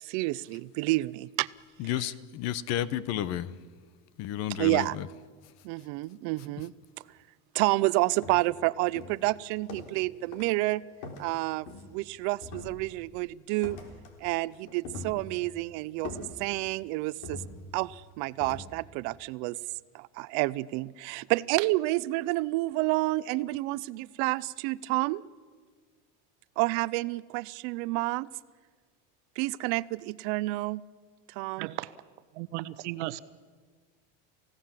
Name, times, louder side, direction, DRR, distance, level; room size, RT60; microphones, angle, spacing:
voice 1, 0.0-1.5 1.8-2.1 4.6-5.0 5.6-6.7 7.5-10.8 11.2-13.8 14.2-17.4 17.7-19.6 19.9-25.2 26.6-28.3 29.4-30.8 31.4-31.7, right 20 dB, 55° right, 19 dB, 0.6 m, -29 dB
voice 2, 1.8-3.5 4.2-4.8, left 12 dB, 50° left, 18 dB, 0.9 m, -31 dB
sound 1, 7.6-7.8 8.2-8.6 9.0-10.1 10.3-10.6 11.0-12.1 12.4-13.1 13.6-14.2 14.5-15.6 16.0-16.8 17.2-17.9 18.4-18.7, left 3 dB, 65° left, 3.6 m, -43 dB
voice 3, 31.6-31.9 32.3-33.2, right 17 dB, 85° right, 15 dB, 1.0 m, -35 dB
29.0 x 16.5 x 7.5 m, 1.5 s
cardioid pair, 160°, 34 cm